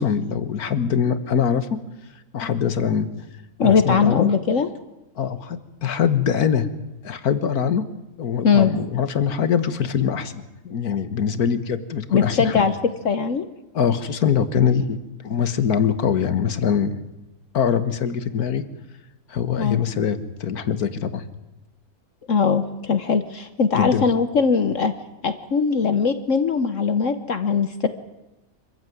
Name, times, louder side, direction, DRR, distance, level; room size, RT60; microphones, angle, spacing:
voice 1, 0.0-1.8 2.3-3.1 3.6-4.3 5.2-6.7 7.0-7.8 8.2-12.7 13.7-15.0 15.2-17.0 17.5-18.6 19.3-21.2 23.7-24.1, left 7 dB, 80° left, 12 dB, 1.9 m, -23 dB
voice 2, 3.6-4.7 8.4-8.7 12.1-12.7 13.0-13.5 19.6-19.8 22.3-24.9 25.2-27.9, left 5 dB, 60° left, 11 dB, 1.4 m, -20 dB
25.5 x 15.0 x 9.3 m, 0.98 s
omnidirectional pair, 1.6 m